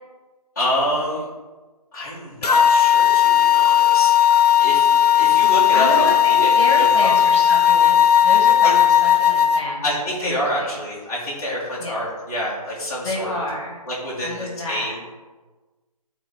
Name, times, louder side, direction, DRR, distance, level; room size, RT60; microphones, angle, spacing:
voice 1, 0.6-1.3 1.9-4.9 5.1-7.2 8.6-8.7 9.8-13.4 13.9-15.0, equal, 30° left, -10 dB, 1.9 m, -27 dB
sound 1, 2.4-9.6, left 10 dB, 85° left, 0.7 m, -16 dB
voice 2, 5.7-9.8 10.2-10.7 11.8-12.0 13.0-13.8 14.2-15.0, left 1 dB, 45° left, -3 dB, 2.2 m, -29 dB
11.0 x 4.1 x 3.1 m, 1.3 s
hypercardioid pair, 175°, 20 cm